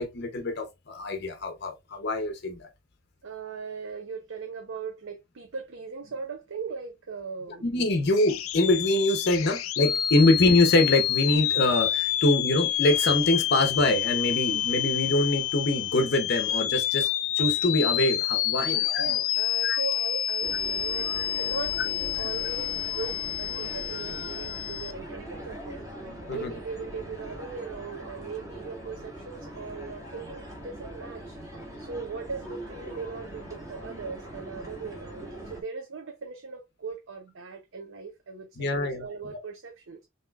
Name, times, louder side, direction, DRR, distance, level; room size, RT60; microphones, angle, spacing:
voice 1, 0.0-2.7 7.6-17.1 17.4-19.0 19.6-19.8 26.3-26.5 38.6-39.0, left 2 dB, 55° left, 0.8 m, -24 dB
voice 2, 3.2-7.7 10.2-10.3 18.6-25.8 26.3-31.4 31.8-40.1, right 5 dB, 70° right, 0.7 m, -39 dB
sound 1, 8.2-24.9, left 12 dB, 90° left, 0.5 m, -28 dB
sound 2, 20.4-35.6, right 1 dB, 15° right, 1.8 m, -41 dB
5.7 x 3.0 x 2.3 m
head